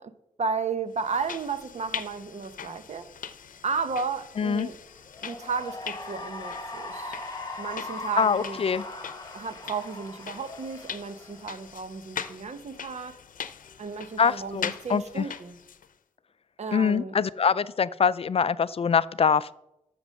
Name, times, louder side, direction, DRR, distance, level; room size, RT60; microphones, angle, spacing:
voice 1, 0.0-3.1 3.6-4.8 5.2-7.2 7.6-8.6 9.3-13.2 13.8-15.6 16.6-17.1, right 5 dB, 55° right, 0.9 m, -33 dB
sound 1, 1.0-15.9, left 8 dB, 90° left, 0.7 m, -41 dB
voice 2, 4.4-4.7 8.2-8.8 14.2-15.3 16.7-19.5, left 6 dB, 45° left, 0.4 m, -24 dB
Cheering / Applause, 5.0-11.7, left 2 dB, 30° left, 1.6 m, -39 dB
13.0 x 7.0 x 6.4 m
wide cardioid pair, 140°, 13 cm